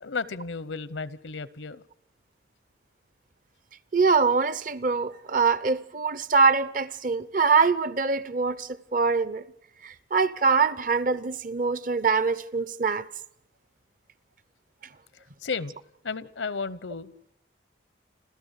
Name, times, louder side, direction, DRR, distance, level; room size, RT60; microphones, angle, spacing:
voice 1, 0.0-1.8 15.1-15.7 16.0-17.1, left 4 dB, 80° left, 0.9 m, -33 dB
voice 2, 3.9-9.4 9.8-13.1, right 4 dB, 45° right, 0.8 m, -24 dB
29.0 x 13.5 x 8.2 m
head